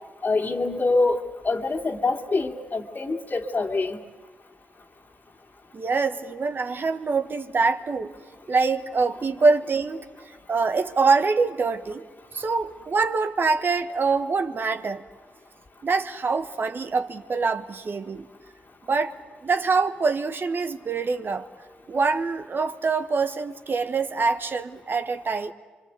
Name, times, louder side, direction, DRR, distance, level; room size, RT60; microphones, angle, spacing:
voice 1, 0.2-4.0, left 3 dB, 40° left, 2 dB, 2.4 m, -25 dB
voice 2, 5.7-8.1 8.5-10.0 10.5-12.0 12.3-15.0 15.8-18.3 18.9-19.1 19.4-21.5 21.9-25.5, right 4 dB, 45° right, 9 dB, 1.3 m, -24 dB
25.0 x 24.5 x 8.3 m, 1.4 s
hypercardioid pair, 40°, 5 cm